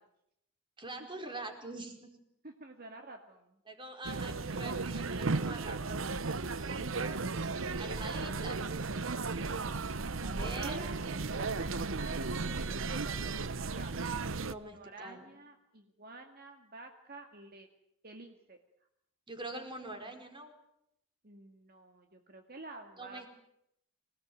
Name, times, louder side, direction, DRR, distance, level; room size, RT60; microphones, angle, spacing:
voice 1, 0.8-2.1 3.7-6.1 6.6-7.2 7.6-8.6 10.2-10.8 14.5-15.4 19.3-20.5 23.0-23.3, right 2 dB, 25° right, 5 dB, 4.6 m, -44 dB
voice 2, 2.4-3.6 10.5-14.0 14.5-17.7 18.0-18.6 21.2-23.3, right 2 dB, 50° right, 4 dB, 2.1 m, -50 dB
sound 1, 4.0-14.5, right 3 dB, 85° right, 1.0 m, -35 dB
26.0 x 18.5 x 9.5 m, 0.78 s
head